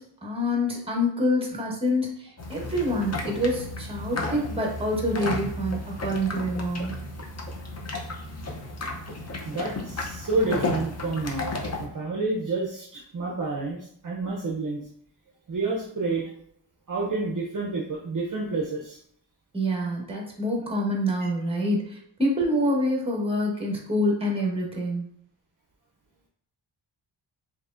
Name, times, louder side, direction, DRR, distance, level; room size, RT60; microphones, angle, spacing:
voice 1, 0.0-6.9 19.5-25.0, equal, 10° right, -2 dB, 1.1 m, -26 dB
sound 1, 2.4-11.9, left 2 dB, 35° left, 0.7 m, -33 dB
voice 2, 9.5-14.8 15.5-16.3 16.9-19.0, right 3 dB, 40° right, -2 dB, 0.6 m, -29 dB
4.6 x 3.1 x 2.5 m, 0.66 s
wide cardioid pair, 110°, 47 cm